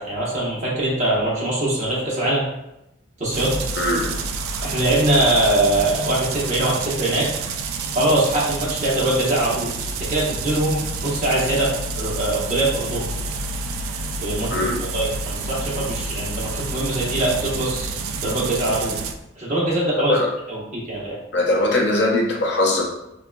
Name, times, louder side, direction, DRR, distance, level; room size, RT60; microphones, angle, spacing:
voice 1, 0.0-2.4 3.2-3.7 4.6-7.3 7.9-9.7 10.1-13.1 14.2-14.7 14.9-17.9 18.2-19.0 19.4-20.2 20.5-21.2, right 1 dB, 35° right, -7 dB, 1.0 m, -22 dB
sound 1, 3.3-19.1, right 3 dB, 90° right, 0.3 m, -29 dB
voice 2, 3.8-4.1 14.5-14.8 20.1-20.3 21.3-22.8, left 2 dB, 55° left, -2 dB, 0.6 m, -20 dB
3.8 x 2.3 x 2.2 m, 0.88 s
head